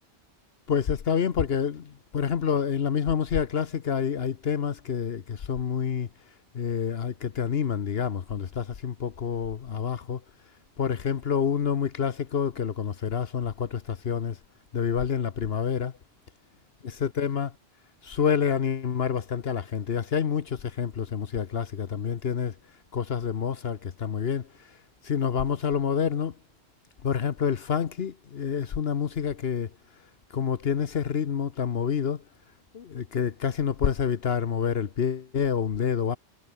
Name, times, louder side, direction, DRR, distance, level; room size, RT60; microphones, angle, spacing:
voice 1, 0.7-6.1 6.5-10.2 10.8-14.4 14.7-15.9 16.8-17.5 18.0-22.5 22.9-24.5 25.0-26.3 27.0-29.7 30.3-32.2 32.7-36.2, left 7 dB, 65° left, 1.2 m, -28 dB
omnidirectional pair, 1.1 m